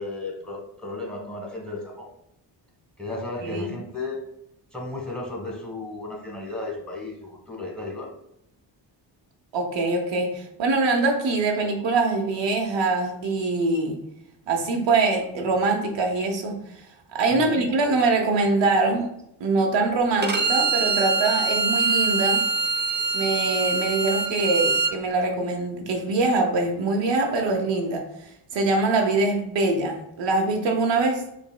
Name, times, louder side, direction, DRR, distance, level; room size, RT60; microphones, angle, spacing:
voice 1, 0.0-2.1 3.0-4.2 4.7-8.1 17.3-17.6, left 2 dB, ahead, 1 dB, 1.3 m, -34 dB
voice 2, 9.5-14.0 14.5-16.6 17.1-19.1 19.4-22.4 23.1-31.2, right 3 dB, 80° right, 3 dB, 0.8 m, -23 dB
Bowed string instrument, 20.2-24.9, right 4 dB, 25° right, 0.5 m, -24 dB
5.0 x 3.3 x 2.2 m, 0.78 s
cardioid pair, 85°, 44 cm